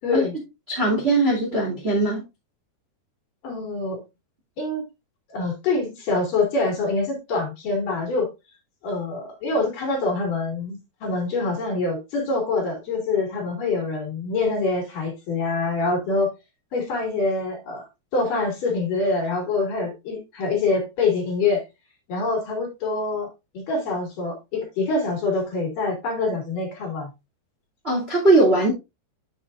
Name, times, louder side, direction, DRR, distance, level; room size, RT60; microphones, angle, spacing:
voice 1, 0.0-0.3 3.4-4.0 4.6-4.8 5.3-8.3 8.8-16.3 16.7-17.8 18.1-21.6 22.1-23.3 23.5-27.1, left 3 dB, 55° left, 3.8 m, -25 dB
voice 2, 0.7-2.2 27.8-28.7, right 2 dB, 20° right, 2.0 m, -20 dB
9.7 x 7.0 x 2.5 m
omnidirectional pair, 4.9 m